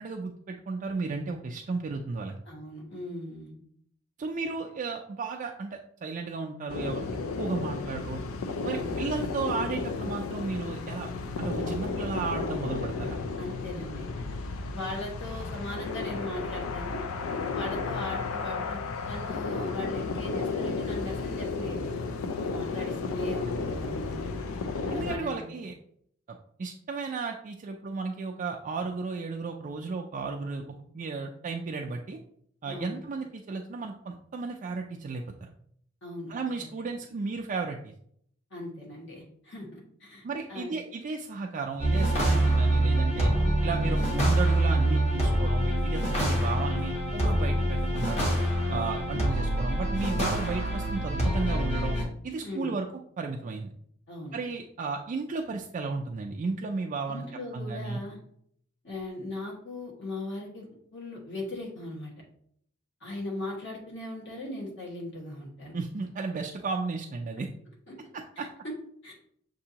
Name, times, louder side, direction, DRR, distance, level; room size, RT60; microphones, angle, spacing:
voice 1, 0.0-2.3 4.2-7.1 7.4-8.2 8.6-11.1 11.4-13.2 24.9-25.7 26.3-30.6 30.9-32.2 32.6-35.5 36.3-37.9 40.2-43.3 43.6-48.2 48.7-52.0 52.2-52.9 53.2-53.7 54.3-57.2 57.5-58.0 65.7-67.5 68.4-68.5, right 4 dB, 40° right, 1 dB, 0.3 m, -34 dB
voice 2, 2.5-3.5 8.7-9.0 13.4-14.1 14.7-17.0 17.5-18.8 19.1-21.8 22.4-24.2 24.9-25.4 32.6-33.0 36.0-36.3 38.5-40.2 40.5-40.8 43.3-43.5 52.4-52.7 54.1-54.4 57.1-58.2 58.8-62.1 63.0-65.8 67.9-68.0 68.4-68.5 69.0-69.1, left 1 dB, 60° left, -3 dB, 1.6 m, -38 dB
sound 1, 6.7-25.2, left 4 dB, 85° left, 0.4 m, -33 dB
sound 2, 41.8-52.0, right 1 dB, 35° left, 1.0 m, -25 dB
6.7 x 2.7 x 2.8 m, 0.67 s
head